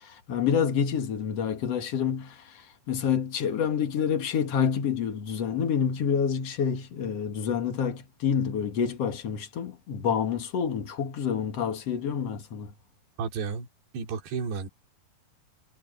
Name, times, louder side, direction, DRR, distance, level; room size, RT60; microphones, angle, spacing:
voice 1, 0.3-2.4 2.9-12.7, left 7 dB, 50° left, 2.2 m, -28 dB
voice 2, 13.2-13.7 13.9-14.7, right 5 dB, 80° right, 5.3 m, -32 dB
omnidirectional pair, 4.8 m